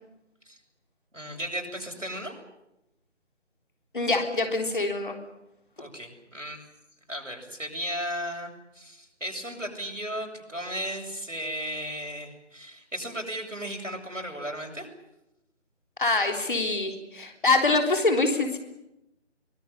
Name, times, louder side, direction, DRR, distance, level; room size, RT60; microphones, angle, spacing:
voice 1, 1.1-2.3 5.8-6.6 7.1-14.9, equal, 90° right, 2 dB, 7.7 m, -35 dB
voice 2, 3.9-5.2 16.0-18.6, left 3 dB, 40° left, 5 dB, 3.7 m, -25 dB
24.0 x 19.5 x 10.0 m, 0.88 s
figure-of-eight pair, 160°, 37 cm